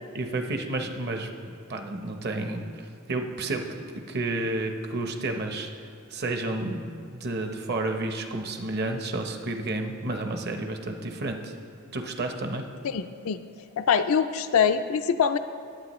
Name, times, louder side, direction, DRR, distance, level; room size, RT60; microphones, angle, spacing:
voice 1, 0.1-3.6 4.1-5.7 6.1-11.5 11.9-12.6, right 2 dB, 45° right, 5 dB, 0.8 m, -31 dB
voice 2, 12.8-13.4 13.8-15.4, left 7 dB, 65° left, 8 dB, 0.4 m, -24 dB
17.5 x 8.3 x 3.1 m, 2.2 s
head